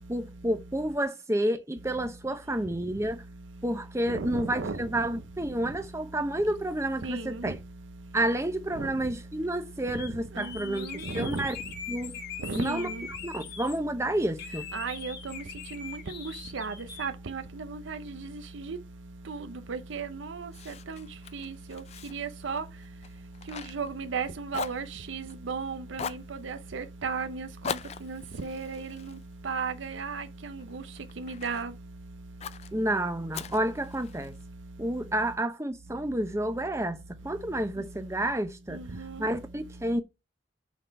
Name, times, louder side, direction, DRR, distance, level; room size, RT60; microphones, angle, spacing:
voice 1, 0.1-3.2 3.6-7.6 8.1-10.9 11.1-11.6 11.9-12.1 12.5-12.9 13.2-14.6 32.7-34.3 34.8-38.8 39.2-40.0, right 1 dB, 15° right, 0.8 m, -30 dB
voice 2, 4.1-4.9 7.0-7.5 8.8-8.9 10.4-11.4 12.4-13.1 14.7-15.4 15.7-18.8 19.3-21.1 21.3-21.8 22.1-22.6 23.5-29.2 29.4-30.8 31.2-31.7 38.7-39.3, right 4 dB, 75° right, 0.6 m, -35 dB
sound 1, 9.9-10.1 10.4-13.8 14.4-17.1, left 7 dB, 55° left, 1.4 m, -42 dB
Fire, 20.5-24.2 24.5-25.5 25.9-26.3 27.6-30.1 30.6-31.7 32.4-32.7 33.3-34.4, left 6 dB, 30° left, 0.3 m, -40 dB
7.1 x 4.0 x 5.7 m
head